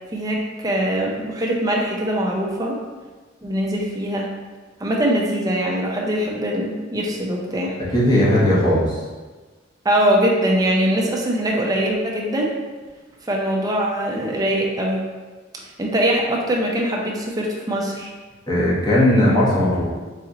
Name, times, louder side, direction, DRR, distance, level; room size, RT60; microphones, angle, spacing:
voice 1, 0.1-2.8 3.4-4.3 4.8-7.8 9.8-12.5 13.2-15.0 15.8-18.1, right 1 dB, 20° right, -2 dB, 0.6 m, -22 dB
voice 2, 7.9-9.0 18.5-19.8, left 1 dB, 20° left, -8 dB, 1.1 m, -17 dB
4.1 x 3.1 x 3.7 m, 1.3 s
head